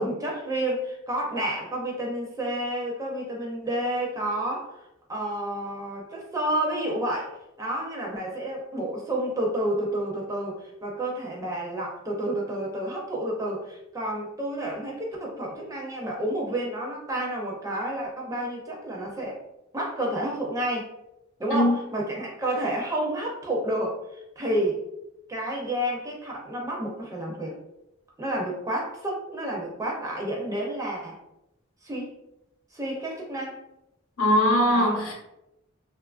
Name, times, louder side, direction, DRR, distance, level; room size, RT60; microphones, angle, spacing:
voice 1, 0.0-4.7 5.1-19.4 19.7-20.9 21.4-24.8 25.3-27.6 28.2-31.2 31.8-32.1 32.7-33.6 34.7-35.1, right 1 dB, 15° right, -2 dB, 0.4 m, -30 dB
voice 2, 34.2-35.1, left 1 dB, 80° left, -1 dB, 0.8 m, -21 dB
2.6 x 2.4 x 2.3 m, 0.87 s
head